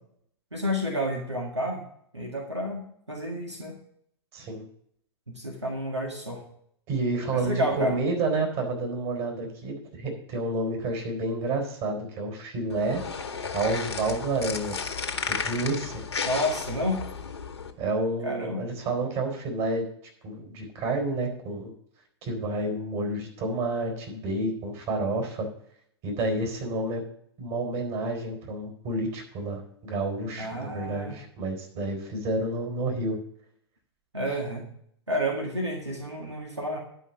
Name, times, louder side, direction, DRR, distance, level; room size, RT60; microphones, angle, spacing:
voice 1, 0.5-1.8 2.1-2.8 3.1-3.8 5.3-6.4 7.3-8.0 16.2-17.0 18.2-18.7 30.4-31.2 34.1-34.7 35.1-36.8, equal, 90° right, 0 dB, 1.9 m, -30 dB
voice 2, 4.3-4.6 6.9-13.0 13.5-14.8 15.1-15.9 17.8-19.8 20.2-21.7 22.2-25.5 26.0-27.0 27.4-33.2, right 2 dB, 40° right, 1 dB, 4.2 m, -29 dB
sound 1, 12.7-17.7, left 5 dB, 75° left, 1.3 m, -33 dB
11.0 x 5.5 x 6.8 m, 0.67 s
figure-of-eight pair, 100°, 14 cm